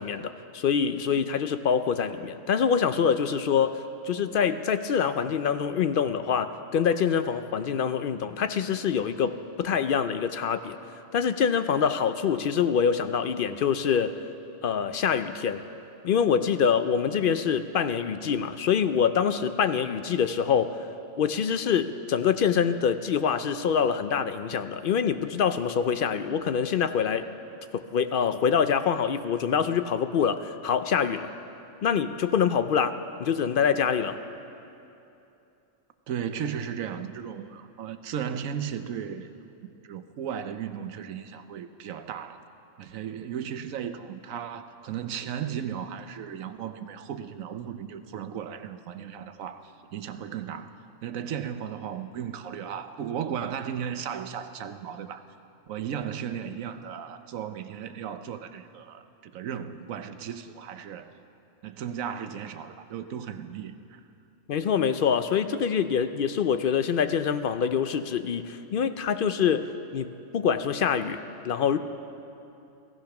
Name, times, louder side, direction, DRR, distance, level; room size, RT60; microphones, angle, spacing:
voice 1, 0.0-10.8 11.1-14.2 14.6-15.6 16.0-20.8 21.2-27.3 27.7-31.3 31.8-34.2 64.5-71.2 71.4-71.8, left 7 dB, 60° left, 11 dB, 0.6 m, -25 dB
voice 2, 36.1-39.3 39.8-42.4 42.8-50.7 51.0-55.2 55.7-61.1 61.6-64.0, right 8 dB, 85° right, 10 dB, 1.2 m, -35 dB
16.5 x 14.5 x 5.9 m, 2.8 s
omnidirectional pair, 1.4 m